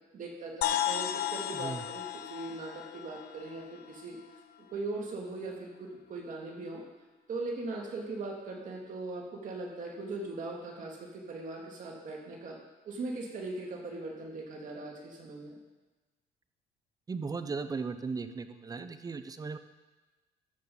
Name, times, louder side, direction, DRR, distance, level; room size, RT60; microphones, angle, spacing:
voice 1, 0.1-4.2 4.7-6.8 7.3-12.6 12.9-15.6, right 2 dB, 50° right, -1 dB, 2.4 m, -39 dB
sound 1, 0.6-4.4, left 11 dB, 70° left, 0.6 m, -35 dB
voice 2, 17.1-19.6, right 4 dB, 20° right, 10 dB, 0.6 m, -37 dB
13.5 x 7.0 x 3.9 m, 1.2 s
cardioid pair, 110°, 17 cm